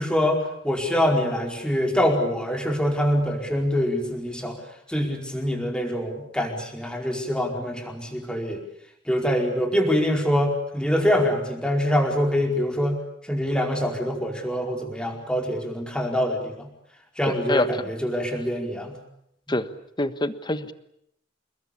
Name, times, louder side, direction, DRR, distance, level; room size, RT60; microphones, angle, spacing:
voice 1, 0.0-4.6 4.9-8.6 9.1-13.0 13.3-16.7 17.2-19.0 19.5-19.6, equal, 5° left, 2 dB, 4.8 m, -24 dB
voice 2, 17.3-17.8 19.5-19.7 20.0-20.7, left 1 dB, 25° left, 12 dB, 1.4 m, -25 dB
29.0 x 21.0 x 8.7 m, 0.74 s
head